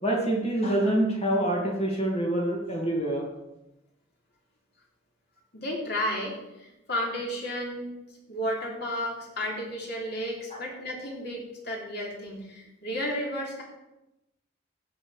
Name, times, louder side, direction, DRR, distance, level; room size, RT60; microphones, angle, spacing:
voice 1, 0.0-3.3 10.5-10.6, right 1 dB, 30° left, -1 dB, 2.4 m, -26 dB
voice 2, 5.5-7.9 8.3-13.6, equal, 55° left, -2 dB, 3.4 m, -32 dB
17.0 x 6.1 x 5.1 m, 0.93 s
head